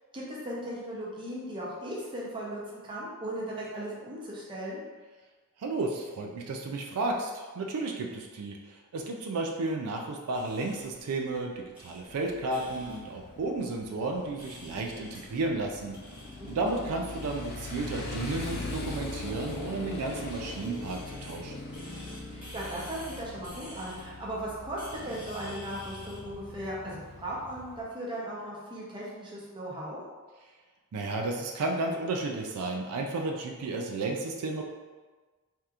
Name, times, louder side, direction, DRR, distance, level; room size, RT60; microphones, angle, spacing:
voice 1, 0.1-4.8 16.4-16.8 22.3-30.0, right 1 dB, 20° right, -5 dB, 0.7 m, -37 dB
voice 2, 5.6-8.6 8.9-16.0 16.5-21.6 30.9-34.6, right 2 dB, 85° right, 1 dB, 0.4 m, -33 dB
sound 1, 10.3-26.3, left 1 dB, 5° right, 1.0 m, -51 dB
Motorcycle, 12.1-27.8, left 2 dB, 50° left, 0.5 m, -41 dB
3.4 x 2.8 x 2.4 m, 1.3 s
head